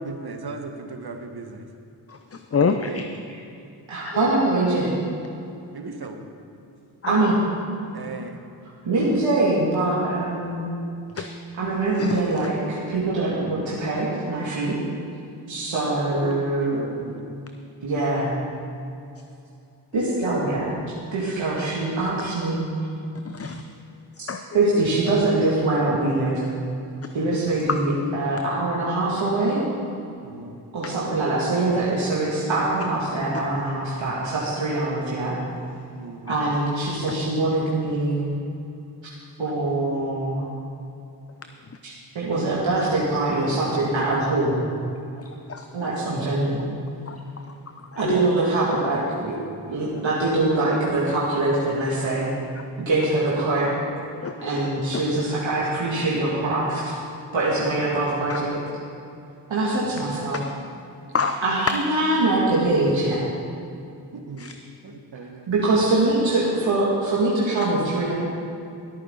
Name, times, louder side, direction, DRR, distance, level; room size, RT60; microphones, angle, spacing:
voice 1, 0.0-1.6 2.5-3.0 5.7-6.3 7.9-8.4 16.1-17.3 30.2-30.6 36.0-36.3 59.6-59.9 64.1-64.5 64.8-65.5, right 3 dB, 50° right, 5 dB, 1.5 m, -36 dB
voice 2, 2.1-3.1 4.1-4.2 7.0-7.2 9.0-9.1 11.2-11.3 11.9-12.5 23.2-23.6 24.3-24.6 25.0-25.1 27.5-27.8 30.8-31.0 36.3-36.4 39.4-39.5 45.2-46.0 47.1-47.2 47.8-48.2 52.9-53.0 54.2-54.7 54.9-55.0 57.3-57.5 58.3-58.4 61.1-61.5 64.4-64.5, left 5 dB, 30° left, 7 dB, 0.7 m, -29 dB
voice 3, 3.9-4.9 7.1-7.3 8.8-10.7 11.1-11.3 11.6-14.8 15.5-16.8 17.8-18.3 19.9-20.8 21.1-22.7 24.2-24.3 24.5-26.4 27.1-29.6 30.7-35.4 36.3-38.3 39.4-40.4 41.8-44.5 45.7-46.6 48.0-52.3 52.8-53.8 54.4-56.9 57.3-58.6 59.5-60.4 61.4-63.2 65.5-68.1, right 2 dB, 70° right, -7 dB, 2.5 m, -23 dB
19.5 x 8.9 x 4.1 m, 2.6 s
supercardioid pair, 40°, 47 cm